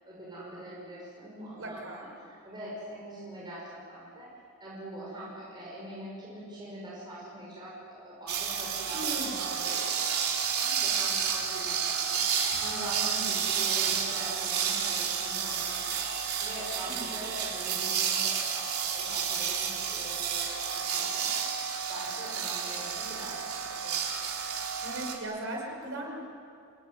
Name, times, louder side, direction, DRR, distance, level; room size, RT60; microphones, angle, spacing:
voice 1, 0.0-3.6 3.9-4.3 4.6-21.5 21.9-24.1, right 1 dB, 20° right, -6 dB, 6.2 m, -43 dB
voice 2, 1.4-2.1 8.9-9.4 16.9-17.1 24.8-26.1, right 1 dB, 65° right, 0 dB, 5.8 m, -38 dB
sound 1, 8.3-25.2, right 7 dB, 85° right, 3.6 m, -31 dB
28.0 x 19.5 x 9.8 m, 2.4 s
head